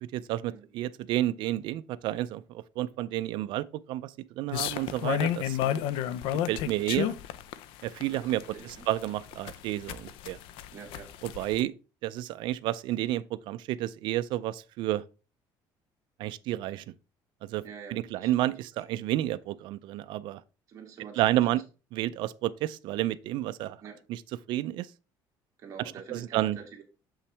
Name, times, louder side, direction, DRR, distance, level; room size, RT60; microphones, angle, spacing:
voice 1, 0.0-5.6 6.5-7.1 7.8-10.4 11.2-11.7 12.0-15.0 16.2-16.9 17.4-17.6 17.9-20.4 21.2-21.6 21.9-23.8 24.1-24.2 24.5-24.9 26.1-26.6, right 14 dB, 60° right, 0.4 m, -30 dB
sound 1, 4.5-11.6, left 10 dB, 75° left, 0.5 m, -31 dB
voice 2, 8.2-8.9 10.7-11.1 17.6-18.5 20.7-21.6 23.8-24.0 25.6-26.8, right 6 dB, 35° right, 1.8 m, -46 dB
7.1 x 5.7 x 3.3 m
cardioid pair, 175°, 9 cm